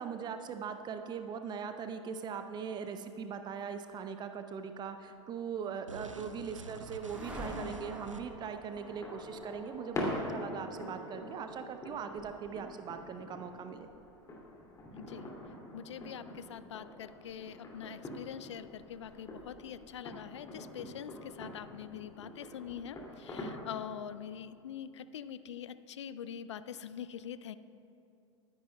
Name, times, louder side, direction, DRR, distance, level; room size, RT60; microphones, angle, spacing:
voice 1, 0.0-13.9, right 7 dB, 25° right, 8 dB, 0.6 m, -40 dB
sound 1, 5.9-8.5, right 2 dB, 85° right, 0.5 m, -48 dB
sound 2, 6.3-15.8, equal, 10° right, 2.1 m, -49 dB
sound 3, 8.8-23.8, left 1 dB, 20° left, 2.3 m, -44 dB
voice 2, 14.9-15.3 15.7-27.5, left 9 dB, 65° left, 15 dB, 0.4 m, -44 dB
22.0 x 10.5 x 2.2 m, 2.6 s
figure-of-eight pair, 85°, 16 cm